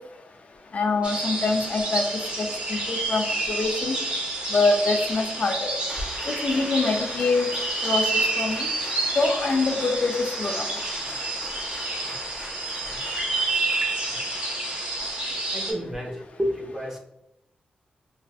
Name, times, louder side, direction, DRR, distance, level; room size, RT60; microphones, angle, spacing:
voice 1, 0.7-3.9 4.5-5.7 6.4-7.5 7.8-8.7 9.2-10.7, left 3 dB, 50° left, 4 dB, 0.4 m, -25 dB
sound 1, 1.0-15.7, right 2 dB, 40° right, 0.9 m, -29 dB
Applause, 5.9-16.0, left 1 dB, 20° left, 0.9 m, -41 dB
voice 2, 15.5-17.0, equal, 15° right, -1 dB, 0.7 m, -30 dB
3.2 x 2.5 x 2.4 m, 0.84 s
wide cardioid pair, 100°, 3 cm